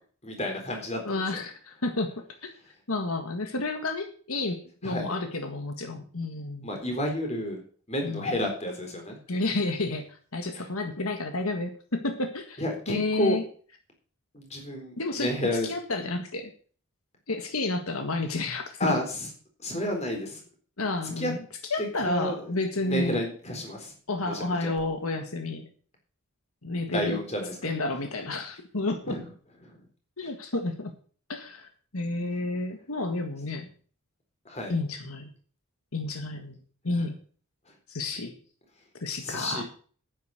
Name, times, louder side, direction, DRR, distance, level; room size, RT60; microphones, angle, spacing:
voice 1, 0.2-1.2 4.8-5.1 6.6-9.2 10.5-10.7 12.6-13.4 14.3-15.7 18.8-19.3 19.6-20.4 21.2-21.3 22.0-22.5 22.8-23.9 24.2-24.7 26.9-27.6 29.1-29.2 29.6-29.8 30.2-30.3 34.5-34.8 39.2-39.6, equal, 30° left, 2 dB, 4.1 m, -31 dB
voice 2, 1.0-2.1 2.4-2.5 2.9-6.8 8.0-8.4 9.3-12.6 12.9-13.4 15.0-16.5 17.3-19.0 20.8-21.4 21.7-23.2 24.1-25.7 26.6-27.2 27.6-29.2 30.2-30.9 31.3-31.7 31.9-33.7 34.7-35.3 35.9-36.6 36.8-37.2 37.9-38.3 39.0-39.6, left 2 dB, 80° left, 6 dB, 1.7 m, -31 dB
10.0 x 9.6 x 6.6 m, 0.43 s
head